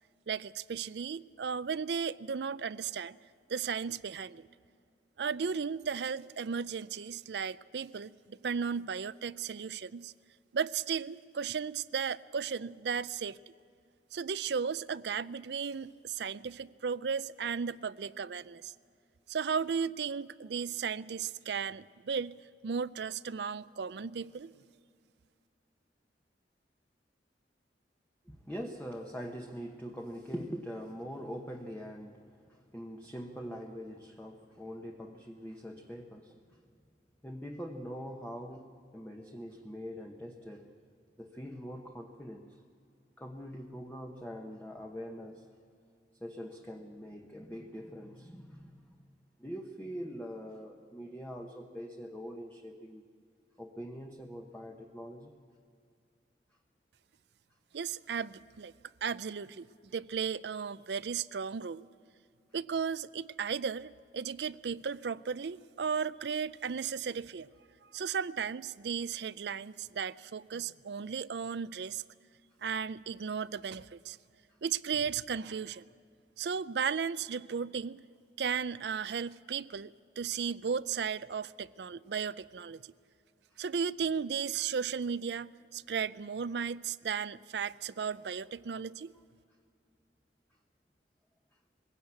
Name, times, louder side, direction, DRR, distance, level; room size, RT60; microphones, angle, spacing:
voice 1, 0.3-3.2 3.5-4.5 5.2-10.1 10.5-13.4 14.1-18.7 19.3-22.3 22.6-24.5 57.7-58.7 59.0-59.7 59.9-61.9 62.5-67.5 67.9-72.0 72.6-74.2 74.6-75.8 76.4-78.0 78.4-82.8 83.6-89.1, right 6 dB, 70° right, 0.5 m, -35 dB
voice 2, 28.2-36.6 37.2-40.7 41.2-42.6 43.2-45.5 46.2-49.0 49.4-53.0 53.6-55.3, equal, 10° left, 1.0 m, -43 dB
21.5 x 16.5 x 8.3 m
head